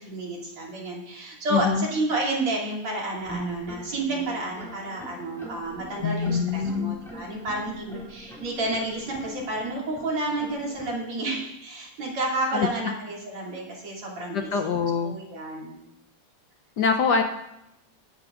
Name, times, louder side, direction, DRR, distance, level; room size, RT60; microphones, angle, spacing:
voice 1, 0.0-15.8, right 2 dB, 80° right, -3 dB, 3.8 m, -30 dB
voice 2, 1.5-1.9 6.0-7.0 12.5-12.7 14.3-15.1 16.8-17.2, left 5 dB, 70° left, 6 dB, 1.1 m, -24 dB
sound 1, 3.2-10.9, right 1 dB, ahead, 4.0 m, -42 dB
20.5 x 10.5 x 2.5 m, 0.84 s
omnidirectional pair, 2.4 m